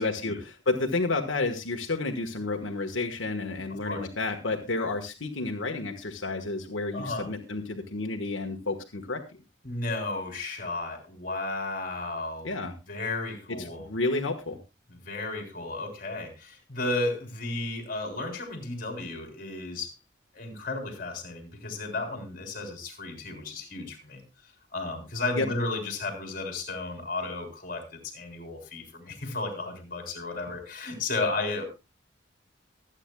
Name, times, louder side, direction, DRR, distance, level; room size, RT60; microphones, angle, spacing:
voice 1, 0.0-9.2 12.4-12.7 13.6-14.6 25.4-25.5, left 3 dB, 90° left, 3 dB, 1.4 m, -30 dB
voice 2, 3.7-4.0 4.8-4.9 6.9-7.3 9.6-12.5 12.9-13.9 14.9-19.9 20.3-24.2 24.7-31.6, left 2 dB, 45° left, 4 dB, 3.4 m, -33 dB
24.0 x 9.0 x 2.3 m, 0.25 s
head